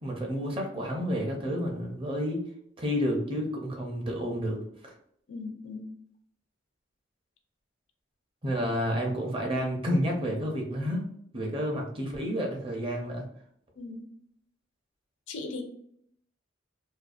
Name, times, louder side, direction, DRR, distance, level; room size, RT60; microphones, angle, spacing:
voice 1, 0.0-2.4 2.8-4.9 8.4-11.1 11.3-13.2, equal, 30° right, 1 dB, 0.6 m, -30 dB
voice 2, 5.3-5.9 13.8-14.0 15.3-15.6, left 3 dB, 75° left, 5 dB, 0.5 m, -38 dB
2.6 x 2.3 x 2.4 m, 0.68 s
head